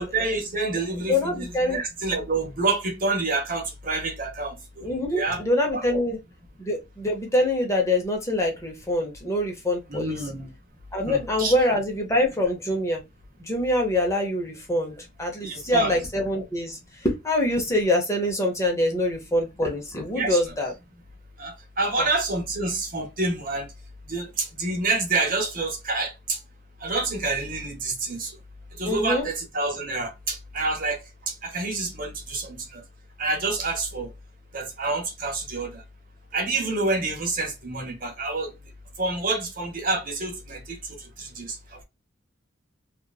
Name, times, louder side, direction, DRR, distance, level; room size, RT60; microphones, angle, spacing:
voice 1, 0.0-5.4 5.7-6.0 9.9-10.5 11.0-11.5 15.4-15.9 20.1-20.5 21.4-23.7 24.1-26.4 26.8-28.3 28.8-31.0 31.3-32.8 33.2-34.1 34.5-35.8 36.3-38.5 39.0-41.8, right 3 dB, 45° right, 0.9 m, -28 dB
voice 2, 1.1-1.8 4.8-6.2 6.6-10.2 10.9-13.0 13.4-20.7 22.0-22.1 28.9-29.3, left 1 dB, 15° left, 0.7 m, -25 dB
2.9 x 2.4 x 2.2 m
head